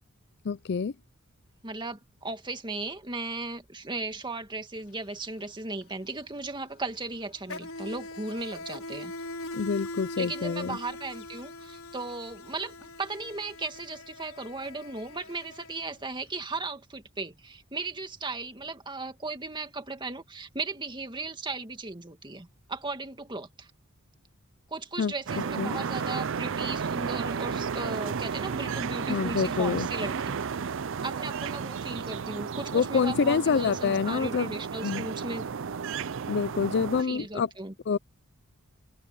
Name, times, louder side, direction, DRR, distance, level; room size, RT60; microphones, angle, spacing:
voice 1, 0.4-0.9 9.5-10.8 25.0-25.1 25.6-25.8 29.1-29.9 32.7-34.5 34.8-35.1 36.3-37.5 37.9-38.0, left 5 dB, 55° left, 0.4 m, -27 dB
voice 2, 1.6-9.1 10.2-23.7 24.7-30.6 31.0-35.5 37.0-37.7, right 3 dB, 20° right, 2.0 m, -36 dB
Insect, 4.8-5.0 5.2-16.2, left 2 dB, 80° left, 5.4 m, -42 dB
sound 1, 25.3-37.0, right 6 dB, 65° right, 0.5 m, -33 dB
open air
head